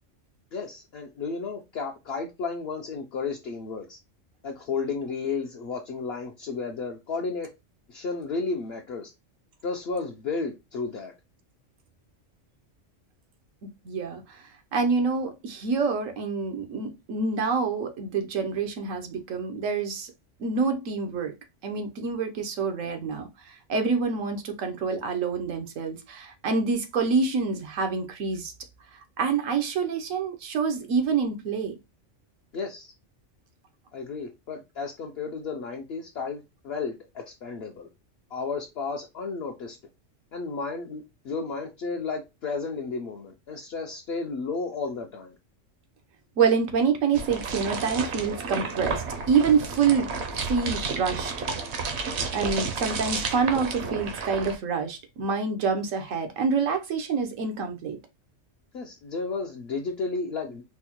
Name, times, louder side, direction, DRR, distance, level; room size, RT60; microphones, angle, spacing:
voice 1, 0.5-4.0 4.4-7.5 7.9-9.1 9.6-11.1 32.5-32.9 33.9-37.9 38.3-39.8 40.3-45.3 58.7-60.6, left 4 dB, 65° left, 0.7 m, -33 dB
voice 2, 13.6-20.1 20.4-21.3 21.6-28.5 29.2-31.8 46.4-51.5 52.3-58.0, right 5 dB, 90° right, 1.1 m, -27 dB
sound 1, 47.1-54.6, right 4 dB, 65° right, 0.8 m, -32 dB
4.4 x 2.1 x 2.8 m
omnidirectional pair, 1.3 m